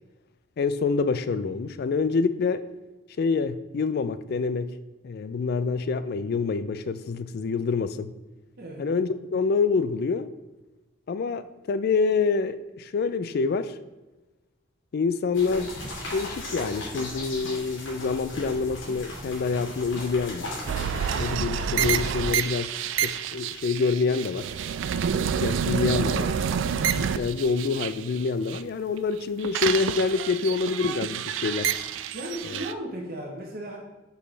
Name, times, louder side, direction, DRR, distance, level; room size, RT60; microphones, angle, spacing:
voice 1, 0.6-2.6 3.2-4.7 5.0-8.1 8.8-10.3 11.1-13.7 14.9-15.7 16.1-20.5 21.2-22.7 23.0-24.5 25.1-26.3 27.0-31.7 32.4-32.6, left 4 dB, 55° left, 12 dB, 0.4 m, -26 dB
sound 1, 15.3-21.4, left 1 dB, 90° left, 2.1 m, -37 dB
sound 2, 20.7-28.6 29.0-32.7, right 8 dB, 75° right, 0.3 m, -28 dB
voice 2, 32.1-33.8, right 1 dB, 50° right, -1 dB, 1.0 m, -35 dB
6.2 x 5.5 x 3.3 m, 1.1 s
head